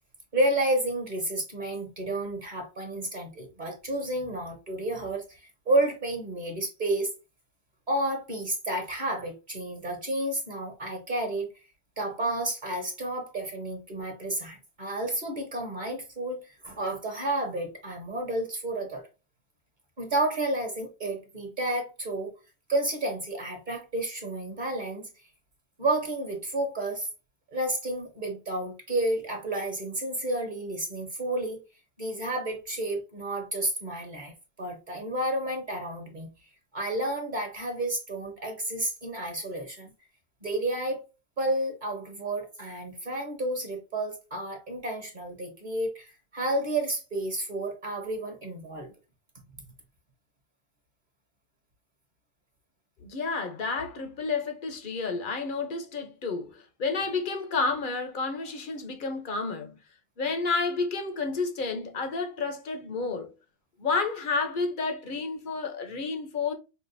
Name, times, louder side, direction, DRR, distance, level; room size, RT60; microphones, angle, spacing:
voice 1, 0.3-5.4 5.6-7.1 7.9-11.5 12.0-19.0 20.0-22.3 22.7-25.1 25.8-27.1 27.5-31.6 32.0-36.3 36.7-39.9 40.4-41.0 41.4-48.9, right 1 dB, 35° right, 1.2 m, -31 dB
voice 2, 53.0-59.8 60.2-63.3 63.8-66.5, left 4 dB, 45° left, 0.8 m, -30 dB
5.6 x 2.4 x 2.6 m
omnidirectional pair, 1.6 m